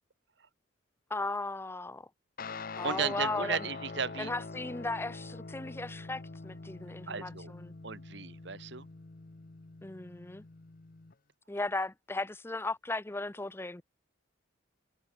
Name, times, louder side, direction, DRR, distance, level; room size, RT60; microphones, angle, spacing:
voice 1, 1.1-2.1 2.8-3.7 4.2-7.7 9.8-10.4 11.5-13.8, left 2 dB, 10° left, 0.5 m, -36 dB
Guitar, 2.4-11.1, left 3 dB, 50° left, 0.8 m, -44 dB
voice 2, 2.8-4.3 7.1-7.5 7.8-8.9, right 6 dB, 60° right, 1.5 m, -35 dB
open air
head